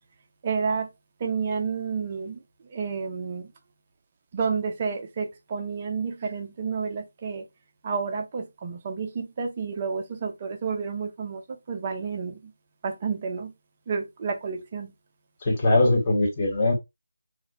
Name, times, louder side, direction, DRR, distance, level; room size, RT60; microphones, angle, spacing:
voice 1, 0.4-0.9 1.2-3.5 4.3-7.5 7.8-12.5 12.8-13.5 13.9-14.9, right 5 dB, 25° right, 0.5 m, -30 dB
voice 2, 15.4-16.7, left 2 dB, 20° left, 1.0 m, -21 dB
2.5 x 2.0 x 3.9 m
figure-of-eight pair, 165°, 0 cm